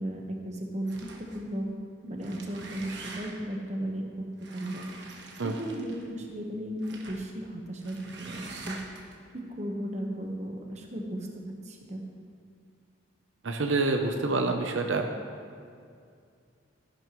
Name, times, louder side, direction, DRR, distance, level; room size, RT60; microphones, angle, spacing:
voice 1, 0.0-1.7 2.0-8.8 9.3-12.0, right 1 dB, 35° right, 1 dB, 1.2 m, -36 dB
sound 1, 0.9-1.5 2.1-3.6 4.4-6.1 6.8-7.3 7.8-9.1, right 3 dB, 65° right, 1.4 m, -45 dB
voice 2, 13.4-15.1, right 3 dB, 80° right, 4 dB, 0.8 m, -27 dB
14.0 x 11.0 x 3.1 m, 2.3 s
head